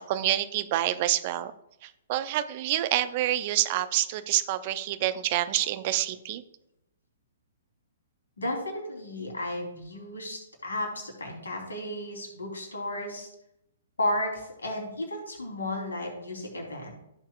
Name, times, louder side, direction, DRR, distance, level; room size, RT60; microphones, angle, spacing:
voice 1, 0.0-1.5 1.8-6.4, right 13 dB, 40° right, 12 dB, 0.7 m, -27 dB
voice 2, 8.4-13.3 14.0-16.9, left 1 dB, 70° left, 1 dB, 3.9 m, -33 dB
15.5 x 7.4 x 2.5 m, 0.83 s
figure-of-eight pair, 115°, 0 cm